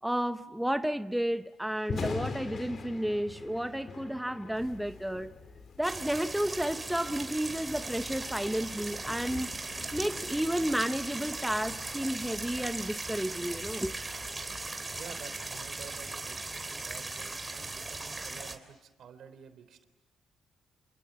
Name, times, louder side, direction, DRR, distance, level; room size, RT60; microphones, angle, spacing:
voice 1, 0.0-5.3 5.8-9.5 9.9-13.9, equal, 5° right, 0.9 m, -32 dB
Thunder, 1.7-15.9, left 5 dB, 50° left, 2.9 m, -45 dB
sound 1, 4.5-14.6, left 4 dB, 65° left, 4.2 m, -54 dB
sound 2, 5.8-18.6, right 3 dB, 20° right, 3.3 m, -38 dB
voice 2, 14.9-19.9, right 7 dB, 65° right, 3.3 m, -50 dB
28.5 x 28.5 x 7.4 m
cardioid pair, 90°, 0 cm